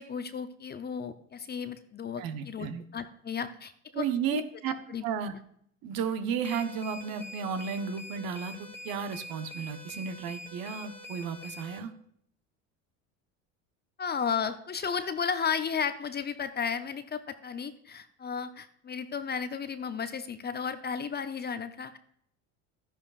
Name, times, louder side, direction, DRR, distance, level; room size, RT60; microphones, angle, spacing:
voice 1, 0.0-4.0 4.3-4.4 4.7-5.0 14.0-22.0, left 6 dB, 25° left, 10 dB, 0.6 m, -34 dB
voice 2, 2.2-2.8 3.9-4.7 5.0-5.3 5.8-11.9, right 7 dB, 60° right, 9 dB, 1.1 m, -33 dB
sound 1, 6.4-11.8, left 1 dB, 5° left, 2.3 m, -45 dB
12.5 x 10.0 x 2.5 m, 0.68 s
hypercardioid pair, 85°, 40 cm